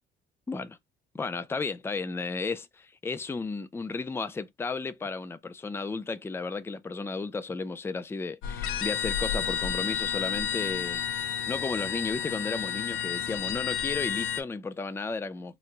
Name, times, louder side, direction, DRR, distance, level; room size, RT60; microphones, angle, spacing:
voice 1, 0.5-0.8 1.1-15.5, left 4 dB, 10° left, 0.4 m, -34 dB
sound 1, 8.4-14.4, left 8 dB, 90° left, 0.4 m, -31 dB
3.0 x 2.2 x 3.7 m
cardioid pair, 90°, 20 cm